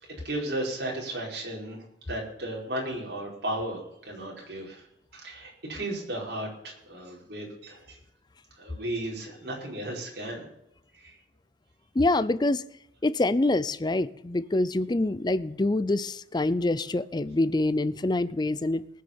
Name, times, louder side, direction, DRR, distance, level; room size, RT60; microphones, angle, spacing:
voice 1, 0.0-4.9 5.1-8.0 8.6-10.5 10.9-11.2, right 1 dB, 60° right, 5.1 m, -35 dB
voice 2, 12.0-12.6 13.0-18.8, left 2 dB, 25° left, 0.5 m, -25 dB
19.5 x 6.6 x 6.9 m
head